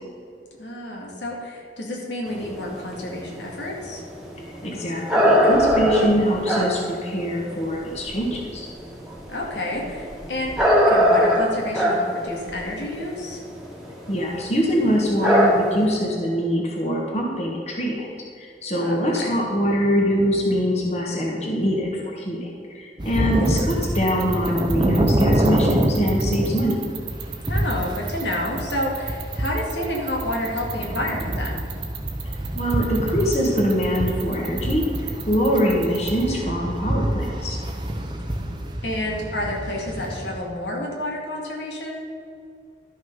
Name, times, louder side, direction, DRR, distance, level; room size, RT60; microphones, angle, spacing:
voice 1, 0.6-4.0 9.3-10.6 10.9-13.4 18.8-19.3 27.5-31.7 38.8-42.1, left 1 dB, 90° left, -2 dB, 2.3 m, -29 dB
sound 1, 2.3-8.3 8.8-14.1 14.4-14.5 14.8-15.0 15.2-15.8, equal, 5° right, 1.6 m, -20 dB
voice 2, 4.6-8.7 14.1-18.1 18.4-26.8 32.5-34.8 35.3-37.6, equal, 35° left, -2 dB, 1.5 m, -23 dB
sound 2, 23.0-40.4, right 1 dB, 25° right, 0.8 m, -26 dB
sound 3, 23.3-36.2, right 14 dB, 75° right, 1.5 m, -33 dB
12.5 x 6.4 x 5.5 m, 2.4 s
head